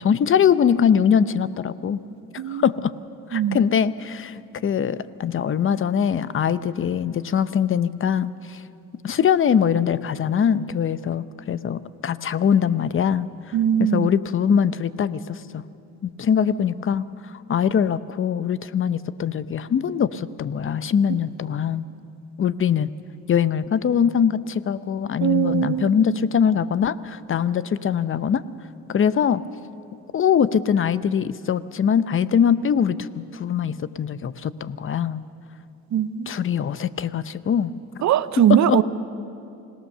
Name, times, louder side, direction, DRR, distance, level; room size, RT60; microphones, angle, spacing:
voice 1, 0.0-2.0 2.5-2.9 3.3-8.6 9.0-13.3 13.8-15.6 16.0-17.0 17.3-21.8 22.4-22.9 23.3-28.4 28.9-29.4 30.1-35.2 36.3-37.7 38.5-38.8, left 8 dB, 45° left, 15 dB, 0.7 m, -22 dB
voice 2, 13.5-14.1 25.2-26.0 35.9-36.3 38.0-38.8, right 10 dB, 65° right, 14 dB, 0.8 m, -20 dB
26.0 x 17.5 x 6.7 m, 2.6 s
cardioid pair, 90°, 30 cm